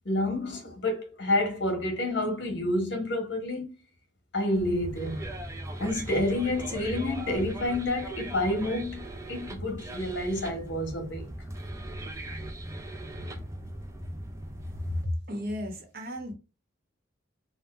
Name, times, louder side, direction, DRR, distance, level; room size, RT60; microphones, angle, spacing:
voice 1, 0.0-3.7 4.3-5.2 5.8-9.0 9.3-11.2, left 1 dB, 60° left, 1.3 m, -29 dB
sound 1, 4.5-15.0, right 1 dB, 15° right, 0.5 m, -39 dB
voice 2, 15.3-16.3, equal, 45° right, 1.0 m, -35 dB
3.5 x 2.2 x 4.2 m
head